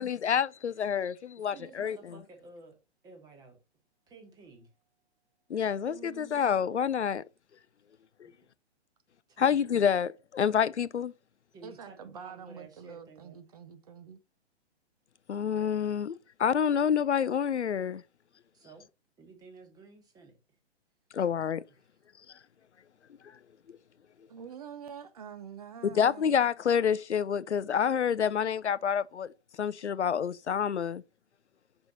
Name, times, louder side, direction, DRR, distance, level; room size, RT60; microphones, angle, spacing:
voice 1, 0.0-2.2 5.5-7.2 8.2-8.3 9.4-11.1 15.3-18.0 21.1-21.6 25.9-29.3 29.6-31.0, left 7 dB, 85° left, 0.5 m, -28 dB
voice 2, 1.5-2.8 3.0-3.6 4.1-4.7 8.2-8.3 9.3-9.6 11.5-13.4 18.5-18.8 19.2-20.3 21.1-21.2, right 3 dB, 10° right, 1.2 m, -52 dB
voice 3, 5.9-6.4 11.6-14.2 24.3-26.3, right 7 dB, 35° right, 0.6 m, -46 dB
5.6 x 4.3 x 3.9 m
figure-of-eight pair, 125°, 34 cm